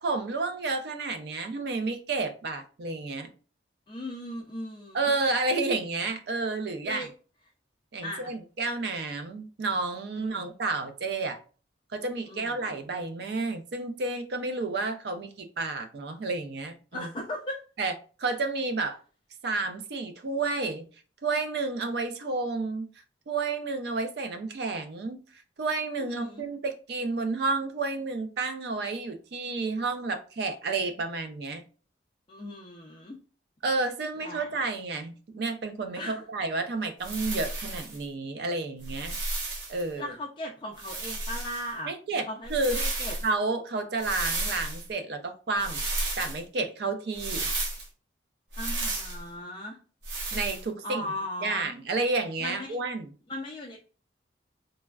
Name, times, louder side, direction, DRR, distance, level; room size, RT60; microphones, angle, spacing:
voice 1, 0.0-3.3 4.9-7.0 7.9-11.4 11.9-17.1 17.8-19.0 19.4-20.8 21.2-22.9 23.3-25.2 25.6-31.6 33.6-39.2 39.7-40.1 41.9-42.2 42.5-42.9 43.2-45.8 46.2-47.5 50.3-51.0 51.4-53.1, right 3 dB, 60° right, 0.4 m, -31 dB
voice 2, 3.9-5.1 6.8-7.1 8.0-8.3 10.2-10.5 12.3-12.7 16.9-17.6 26.0-26.4 32.3-33.2 34.2-34.7 36.0-36.2 40.0-43.2 48.6-49.8 50.8-51.7 52.4-52.8 53.3-53.8, left 1 dB, 25° left, 0.3 m, -38 dB
sound 1, 37.0-38.0 38.8-39.8 40.8-41.7 42.5-43.3 44.0-44.9 45.6-46.4 47.1-47.9 48.5-49.2 50.0-50.6, right 2 dB, 85° right, 0.9 m, -32 dB
3.2 x 2.1 x 2.3 m
head